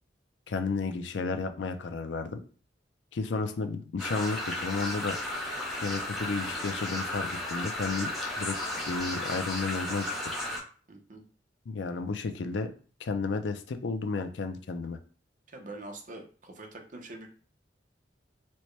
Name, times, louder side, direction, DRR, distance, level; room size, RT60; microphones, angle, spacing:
voice 1, 0.5-2.4 3.1-5.2 5.8-8.1 8.4-10.1 11.7-12.7 13.0-15.0, left 4 dB, 80° left, 7 dB, 0.5 m, -32 dB
sound 1, 4.0-10.6, left 1 dB, ahead, 0.9 m, -34 dB
voice 2, 10.9-11.2 15.5-17.3, right 2 dB, 45° right, 3 dB, 0.7 m, -44 dB
4.3 x 2.1 x 3.1 m, 0.40 s
head